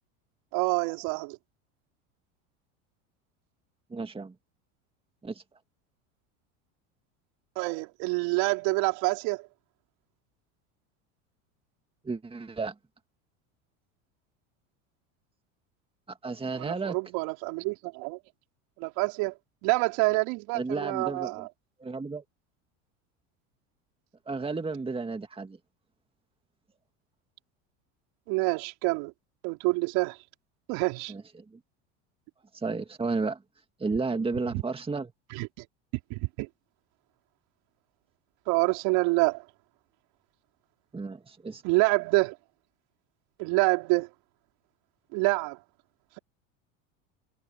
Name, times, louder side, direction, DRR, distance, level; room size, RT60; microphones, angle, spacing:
voice 1, 0.5-1.4 7.6-9.5 16.5-18.2 18.8-19.3 19.6-21.5 28.3-29.1 29.4-30.2 30.7-31.1 34.5-34.6 35.3-35.5 36.1-36.5 38.5-39.4 41.6-42.4 43.4-44.1 45.1-45.6, right 27 dB, 65° right, 4.4 m, -27 dB
voice 2, 3.9-4.3 5.2-5.4 12.0-12.7 16.1-16.9 20.5-21.5 21.8-22.2 24.3-25.6 31.1-31.2 32.5-33.4 33.8-35.1 40.9-41.6, right 4 dB, 15° right, 2.2 m, -32 dB
hypercardioid pair, 95°, 39 cm